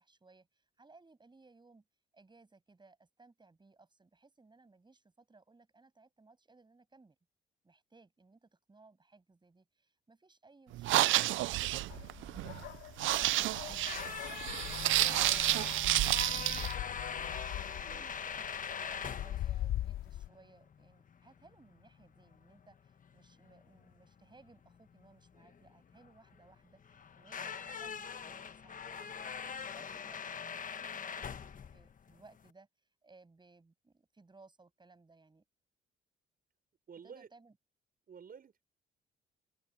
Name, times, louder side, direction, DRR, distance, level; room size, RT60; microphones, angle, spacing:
voice 1, 0.0-1.8 2.1-7.2 7.6-12.7 13.1-32.7 33.0-35.4 37.0-37.6, right 3 dB, 20° right, 7.3 m, -62 dB
sound 1, 10.7-16.7, right 16 dB, 75° right, 0.5 m, -30 dB
sound 2, 11.9-20.3, left 13 dB, 85° left, 3.1 m, -42 dB
sound 3, 13.6-32.5, left 7 dB, 40° left, 1.3 m, -43 dB
voice 2, 17.7-18.1 36.9-37.3 38.1-38.6, right 7 dB, 45° right, 5.8 m, -51 dB
open air
cardioid pair, 90°, 20 cm